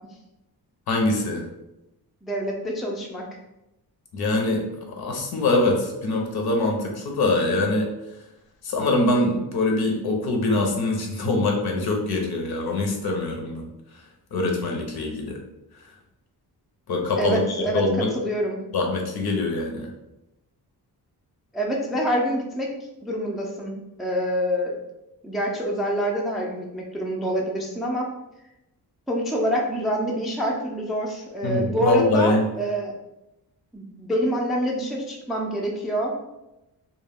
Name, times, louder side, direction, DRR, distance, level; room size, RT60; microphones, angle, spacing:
voice 1, 0.9-1.4 4.1-4.7 5.0-7.9 8.6-13.7 14.3-15.4 16.9-18.1 18.7-19.9 31.4-32.4, left 2 dB, 70° left, 1 dB, 0.7 m, -23 dB
voice 2, 2.2-3.3 17.2-18.6 21.5-22.7 23.0-24.7 25.2-28.1 29.1-32.9 33.7-36.3, equal, ahead, -2 dB, 0.3 m, -26 dB
2.2 x 2.1 x 3.3 m, 0.92 s
wide cardioid pair, 115°, 39 cm